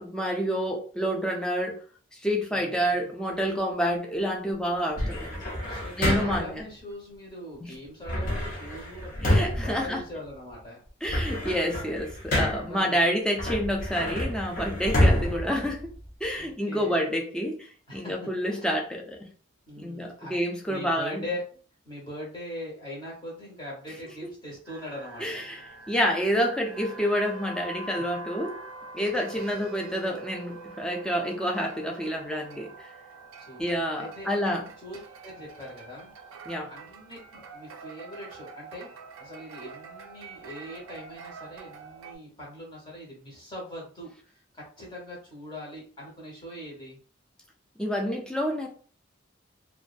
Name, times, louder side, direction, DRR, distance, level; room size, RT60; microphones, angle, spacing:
voice 1, 0.0-1.8 2.1-5.5 6.0-6.6 9.2-10.0 11.0-15.9 16.2-19.3 19.8-21.2 25.2-25.6 25.9-28.6 28.9-32.7 33.6-34.6 36.5-36.7 47.8-48.7, equal, 5° left, 0 dB, 0.4 m, -28 dB
sound 1, 5.0-6.6 8.0-10.5 10.9-12.8 13.4-16.4, left 1 dB, 40° left, 0.6 m, -28 dB
voice 2, 5.7-9.1 9.5-10.8 12.4-13.1 16.4-17.0 17.9-18.2 18.4-18.7 19.7-20.4 20.7-21.6 21.8-25.4 27.8-28.0 29.0-29.2 33.4-33.6 34.0-34.3 34.8-36.1 36.6-38.9 39.2-47.0, left 1 dB, 20° left, -4 dB, 1.0 m, -41 dB
sound 2, 24.7-42.2, right 3 dB, 85° right, 0.4 m, -45 dB
2.5 x 2.2 x 2.4 m, 0.42 s
head